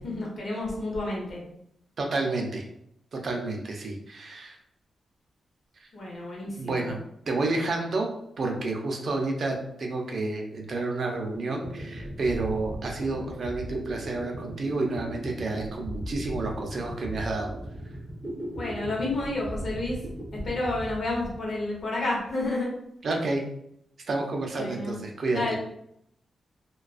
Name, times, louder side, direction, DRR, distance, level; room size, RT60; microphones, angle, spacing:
voice 1, 0.0-1.4 5.9-6.9 18.5-20.1 20.3-22.7 24.5-25.0 25.3-25.6, left 2 dB, 55° left, -3 dB, 0.9 m, -30 dB
voice 2, 2.0-2.7 3.1-4.6 5.8-5.9 6.6-7.0 7.3-8.1 8.4-17.5 23.0-23.4 24.1-25.6, right 3 dB, 55° right, 1 dB, 0.5 m, -30 dB
sound 1, 11.3-21.8, right 1 dB, 10° right, 0.6 m, -38 dB
2.4 x 2.2 x 2.3 m, 0.74 s
cardioid pair, 105°, 0 cm